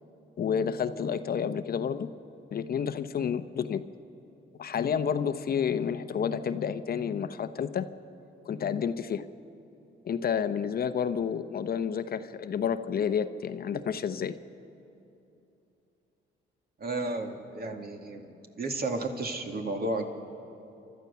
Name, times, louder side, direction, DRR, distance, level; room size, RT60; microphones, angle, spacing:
voice 1, 0.4-2.1 2.5-3.8 4.6-7.9 8.4-9.2 10.0-14.3, left 7 dB, 50° left, 11 dB, 0.8 m, -30 dB
voice 2, 16.8-18.3 18.6-20.0, right 2 dB, 50° right, 4 dB, 2.3 m, -32 dB
30.0 x 12.5 x 7.0 m, 2.9 s
cardioid pair, 90°, 20 cm